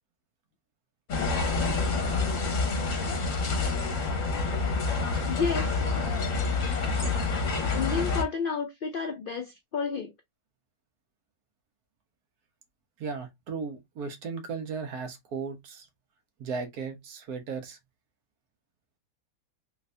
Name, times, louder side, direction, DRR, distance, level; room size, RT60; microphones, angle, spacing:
sound 1, 1.1-8.2, left 4 dB, 60° left, 1.2 m, -27 dB
voice 1, 5.3-5.8 7.7-10.1, left 5 dB, 85° left, 0.4 m, -31 dB
voice 2, 13.0-15.9 16.4-17.8, right 5 dB, 80° right, 1.4 m, -36 dB
3.3 x 2.6 x 3.2 m
omnidirectional pair, 1.6 m